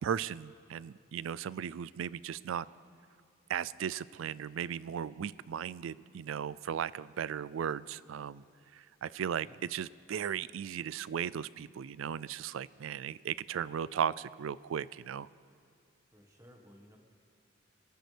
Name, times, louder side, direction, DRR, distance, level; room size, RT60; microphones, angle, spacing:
voice 1, 0.0-2.7 3.5-8.4 8.7-15.3, right 8 dB, 70° right, 19 dB, 0.3 m, -36 dB
voice 2, 16.1-17.0, equal, 15° right, 2 dB, 1.5 m, -57 dB
26.5 x 14.5 x 3.4 m, 2.3 s
head